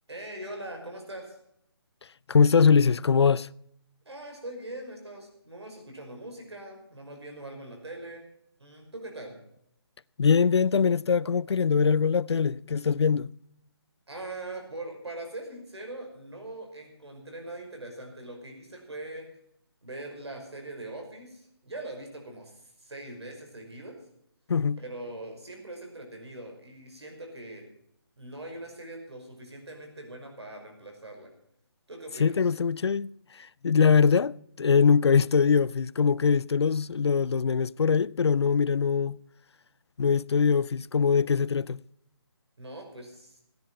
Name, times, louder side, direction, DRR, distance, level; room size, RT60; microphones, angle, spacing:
voice 1, 0.1-1.4 4.1-8.2 8.6-9.4 14.1-19.3 19.8-24.0 24.8-27.7 28.2-31.3 31.9-32.3 42.6-43.4, right 2 dB, 85° right, 5.7 m, -41 dB
voice 2, 2.3-3.5 10.2-13.3 24.5-24.8 32.2-33.1 33.3-39.2 40.0-41.8, left 6 dB, 80° left, 0.5 m, -22 dB
16.0 x 10.5 x 5.6 m
hypercardioid pair, 160°, 14 cm